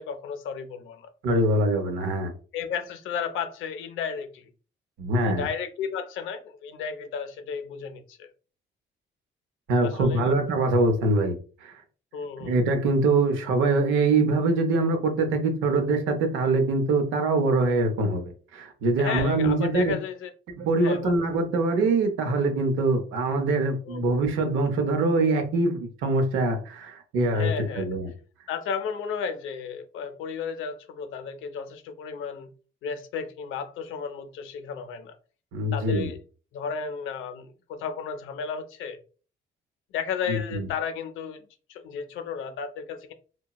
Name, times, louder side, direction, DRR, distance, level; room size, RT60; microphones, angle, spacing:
voice 1, 0.0-1.1 2.5-4.4 5.2-8.3 9.8-10.3 12.1-12.6 19.0-20.3 20.8-21.2 23.9-24.1 27.3-27.9 28.5-32.5 32.8-35.2 35.7-36.2 36.5-39.0 39.9-41.4 41.7-43.1, left 6 dB, 90° left, 0.5 m, -33 dB
voice 2, 1.2-2.3 5.0-5.5 9.7-11.4 11.6-11.7 12.4-19.9 20.6-28.1 35.5-36.1 40.3-40.7, right 2 dB, 85° right, 0.7 m, -24 dB
2.9 x 2.2 x 2.2 m
cardioid pair, 90°, 20 cm